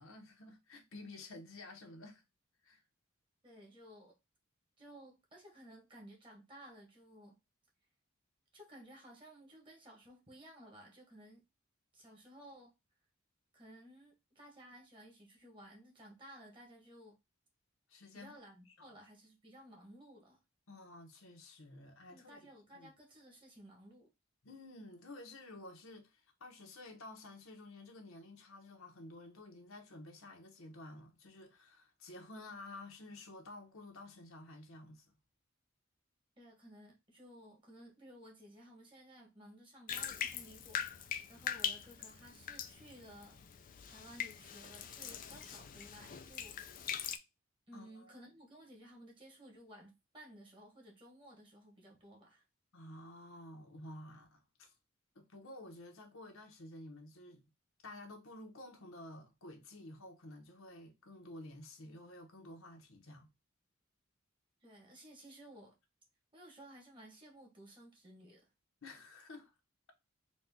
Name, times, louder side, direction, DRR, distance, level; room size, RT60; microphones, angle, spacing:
voice 1, 0.0-2.2 2.6-2.8 17.9-18.3 18.8-18.9 20.7-22.4 22.7-22.9 24.4-35.2 47.7-48.1 52.7-54.7 55.1-57.5 57.8-63.3 68.8-69.5, left 2 dB, 80° left, 1.1 m, -52 dB
voice 2, 3.4-4.2 4.8-7.4 8.5-11.4 11.9-12.7 13.5-17.2 18.1-20.4 22.1-24.1 36.4-46.6 47.7-52.4 64.6-65.8 66.3-68.5, right 1 dB, 25° right, 1.4 m, -56 dB
Bathtub (filling or washing), 39.9-47.2, left 8 dB, 40° left, 0.4 m, -42 dB
4.2 x 2.4 x 3.6 m
head